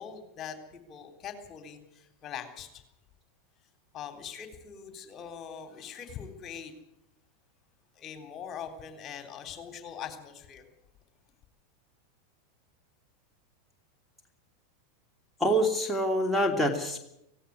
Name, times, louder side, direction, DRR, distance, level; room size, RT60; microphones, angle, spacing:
voice 1, 0.0-2.8 3.9-6.7 8.0-10.6, left 8 dB, 35° left, 7 dB, 3.6 m, -42 dB
voice 2, 15.4-17.0, equal, 5° left, 1 dB, 2.8 m, -26 dB
17.0 x 17.0 x 9.5 m, 0.81 s
figure-of-eight pair, 90°, 0 cm